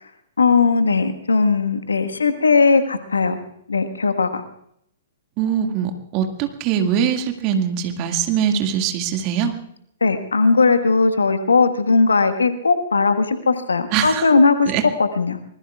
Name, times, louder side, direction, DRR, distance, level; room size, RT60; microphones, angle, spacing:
voice 1, 0.4-3.4 3.7-4.4 10.0-14.7 15.0-15.4, left 4 dB, 75° left, 9 dB, 1.5 m, -18 dB
voice 2, 5.4-9.6 13.9-14.3 14.7-14.8, right 8 dB, 35° right, 4 dB, 2.1 m, -22 dB
25.5 x 20.0 x 2.4 m, 0.72 s
figure-of-eight pair, 115°, 0 cm